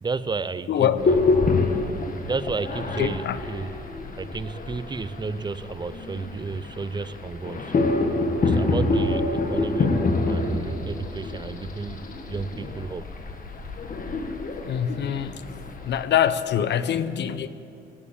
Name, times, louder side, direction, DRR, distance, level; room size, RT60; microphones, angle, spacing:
voice 1, 0.0-1.2 2.2-3.8 4.2-7.7 8.4-10.0 10.3-13.1, right 4 dB, 20° right, 14 dB, 0.6 m, -32 dB
voice 2, 0.7-1.0 3.0-3.4 14.6-15.3 15.8-17.5, left 9 dB, 60° left, 13 dB, 0.7 m, -24 dB
sound 1, 1.0-16.1, left 3 dB, 45° left, 1.6 m, -27 dB
17.5 x 7.3 x 8.5 m, 2.5 s
cardioid pair, 90°, 20 cm